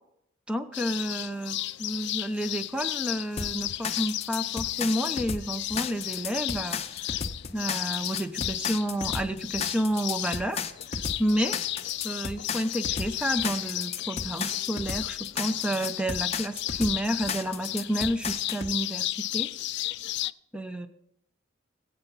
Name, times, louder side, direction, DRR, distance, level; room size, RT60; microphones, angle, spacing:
voice 1, 0.5-7.2 7.5-10.6 11.2-11.6 12.0-19.5 20.5-20.9, equal, 5° right, 9 dB, 0.7 m, -30 dB
sound 1, 0.7-20.3, left 15 dB, 55° left, 0.3 m, -34 dB
sound 2, 3.4-18.7, left 5 dB, 30° left, 0.7 m, -34 dB
21.5 x 8.1 x 4.1 m, 0.78 s
head